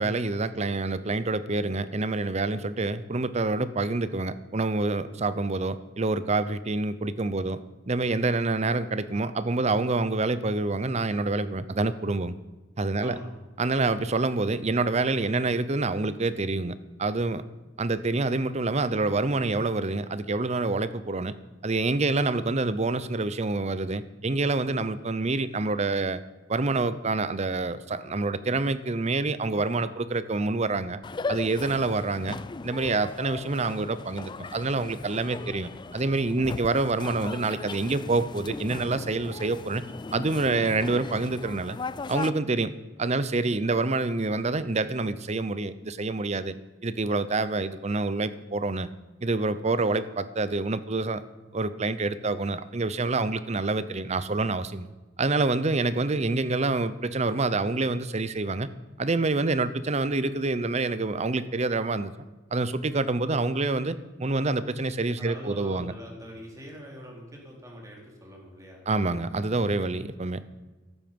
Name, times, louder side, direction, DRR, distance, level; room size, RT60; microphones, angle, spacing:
voice 1, 0.0-7.6 7.9-12.4 12.8-13.2 13.6-17.4 17.8-21.3 21.6-26.2 26.5-31.0 31.3-32.4 32.6-39.8 40.1-41.8 42.1-42.7 43.0-46.5 46.8-48.9 49.2-51.2 51.5-54.9 55.2-58.7 59.0-62.1 62.5-65.9 68.9-70.4, right 3 dB, 35° right, 14 dB, 0.8 m, -27 dB
voice 2, 13.0-13.3 65.2-68.9, equal, 20° right, -1 dB, 3.8 m, -43 dB
sound 1, 31.0-42.3, left 3 dB, 25° left, 0.4 m, -38 dB
14.5 x 12.5 x 5.4 m, 1.2 s
head